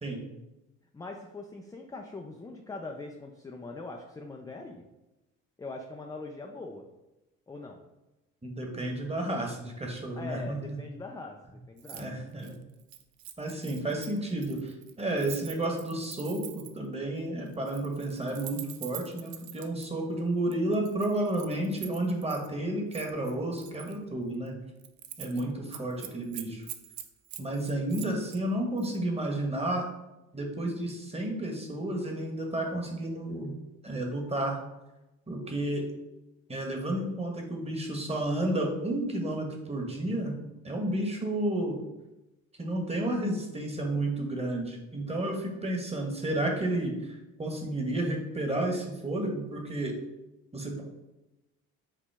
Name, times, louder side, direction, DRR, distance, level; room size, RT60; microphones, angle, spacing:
voice 1, 0.9-4.8 5.6-6.8 7.5-7.8 10.2-12.1, left 3 dB, 10° left, 2 dB, 0.4 m, -42 dB
voice 2, 8.4-10.6 11.9-12.5 13.4-14.7 15.0-24.5 25.2-26.7 27.4-29.8 30.3-33.5 33.8-34.6 35.3-35.9 36.5-40.3 40.6-41.8 42.6-49.9 50.5-50.8, right 1 dB, 15° right, 1 dB, 1.2 m, -31 dB
Keys jangling, 11.8-12.1 12.3-16.9 17.5-19.9 20.5-22.5 22.9-24.0 24.3-24.5 24.8-25.4 25.7-28.4 28.8-29.0, right 11 dB, 60° right, 0.6 m, -45 dB
5.1 x 2.8 x 3.4 m, 1.0 s
hypercardioid pair, 55°, 40 cm